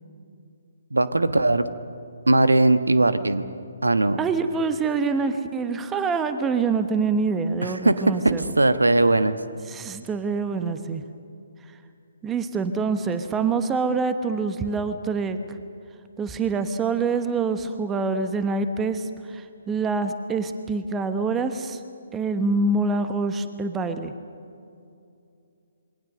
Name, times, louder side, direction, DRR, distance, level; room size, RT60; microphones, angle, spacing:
voice 1, 0.9-1.7 2.3-3.5 3.8-4.2 7.6-9.4, right 2 dB, 75° right, 11 dB, 1.3 m, -20 dB
voice 2, 4.2-8.5 9.7-11.0 12.2-15.4 16.2-21.8 22.1-24.1, right 4 dB, 10° right, 9 dB, 1.1 m, -25 dB
27.5 x 23.0 x 6.6 m, 2.6 s
figure-of-eight pair, 135°, 0 cm